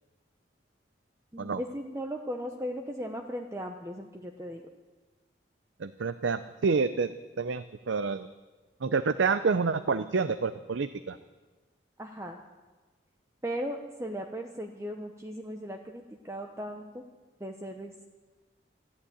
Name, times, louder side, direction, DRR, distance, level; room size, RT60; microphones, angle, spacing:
voice 1, 1.3-4.7 12.0-12.4 13.4-17.1 17.4-18.1, equal, 15° right, 3 dB, 0.8 m, -37 dB
voice 2, 5.8-7.1 7.4-8.3 8.8-11.2, right 4 dB, 80° right, 12 dB, 0.5 m, -28 dB
14.0 x 11.5 x 8.6 m, 1.3 s
head